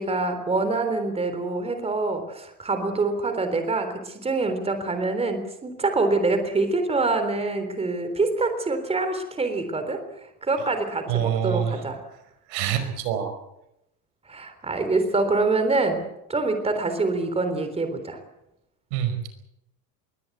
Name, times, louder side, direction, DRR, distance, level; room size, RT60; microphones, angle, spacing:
voice 1, 0.0-10.0 10.4-12.0 14.3-16.0 16.3-18.2, right 3 dB, 15° right, 8 dB, 3.6 m, -25 dB
voice 2, 11.1-11.8 12.5-13.3 18.9-19.3, right 9 dB, 65° right, 9 dB, 5.2 m, -26 dB
23.0 x 18.0 x 8.1 m, 0.85 s
supercardioid pair, 155°, 47 cm